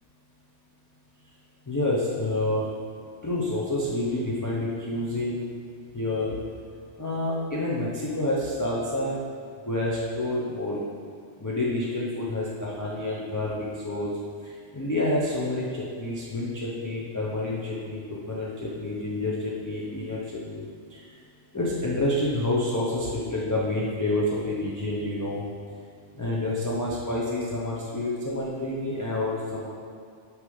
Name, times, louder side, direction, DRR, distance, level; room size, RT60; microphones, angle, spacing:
voice 1, 1.7-2.7 3.2-5.4 5.9-6.4 7.0-9.3 9.7-10.8 11.4-14.1 14.4-21.0 21.5-25.4 26.1-29.7, left 1 dB, 20° left, -6 dB, 0.7 m, -28 dB
6.4 x 4.8 x 5.5 m, 2.2 s
omnidirectional pair, 1.2 m